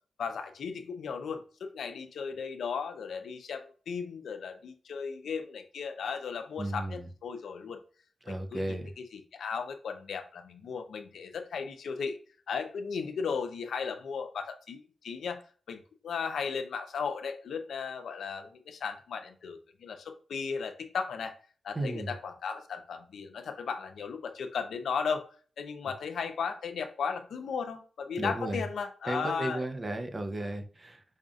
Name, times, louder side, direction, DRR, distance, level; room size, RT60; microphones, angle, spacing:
voice 1, 0.2-7.8 8.3-12.2 12.5-15.4 15.7-21.3 21.6-25.2 25.6-29.7, left 6 dB, 90° left, 0.5 m, -36 dB
voice 2, 6.6-7.1 8.2-8.9 21.7-22.1 28.2-28.6 29.1-31.0, right 1 dB, 25° right, 0.6 m, -34 dB
5.2 x 2.5 x 2.4 m
wide cardioid pair, 95°, 0 cm